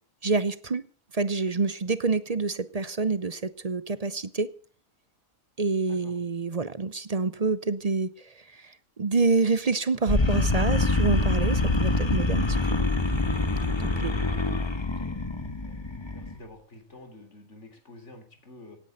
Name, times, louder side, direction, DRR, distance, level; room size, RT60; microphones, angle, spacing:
voice 1, 0.2-0.8 1.1-4.5 5.6-12.8 13.8-14.1, right 4 dB, 35° right, 0.7 m, -27 dB
sound 1, 10.1-16.3, left 2 dB, 20° left, 1.1 m, -25 dB
voice 2, 14.0-14.7 15.0-15.2 15.6-18.8, left 2 dB, 55° left, 3.9 m, -49 dB
17.5 x 10.0 x 6.6 m
omnidirectional pair, 1.4 m